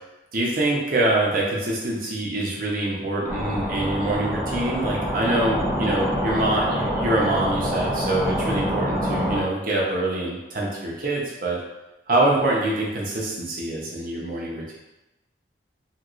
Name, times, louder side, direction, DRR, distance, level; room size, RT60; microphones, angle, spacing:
voice 1, 0.3-11.6 12.1-14.8, right 2 dB, 50° right, -3 dB, 0.6 m, -25 dB
sound 1, 3.3-9.4, equal, 5° right, 0.4 m, -26 dB
3.0 x 2.8 x 2.4 m, 1.0 s
head